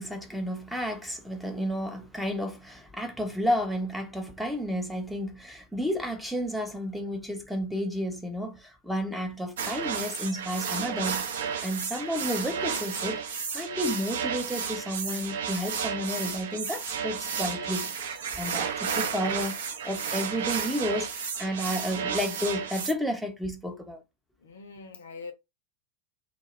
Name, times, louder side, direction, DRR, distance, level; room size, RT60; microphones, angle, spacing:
voice 1, 0.0-13.2 13.5-19.5 19.8-24.0, equal, ahead, 0.6 m, -32 dB
sound 1, 9.6-22.9, right 6 dB, 60° right, 0.5 m, -32 dB
voice 2, 24.4-25.3, left 4 dB, 65° left, 0.5 m, -43 dB
2.1 x 2.0 x 3.0 m
figure-of-eight pair, 90°, 0 cm